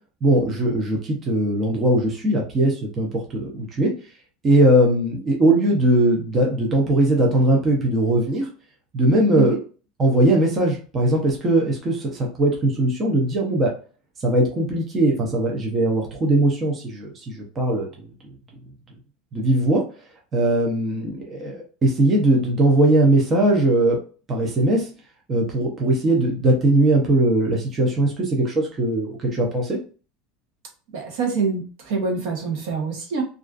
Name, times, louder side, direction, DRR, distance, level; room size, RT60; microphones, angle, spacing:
voice 1, 0.2-3.9 4.4-8.5 8.9-9.6 10.0-13.7 14.2-17.9 19.3-19.8 20.3-24.0 24.3-24.9 25.3-29.8, right 1 dB, 20° right, -1 dB, 0.5 m, -20 dB
voice 2, 30.9-33.2, right 5 dB, 65° right, 3 dB, 0.7 m, -25 dB
2.4 x 2.3 x 2.3 m, 0.38 s
supercardioid pair, 160°, 0 cm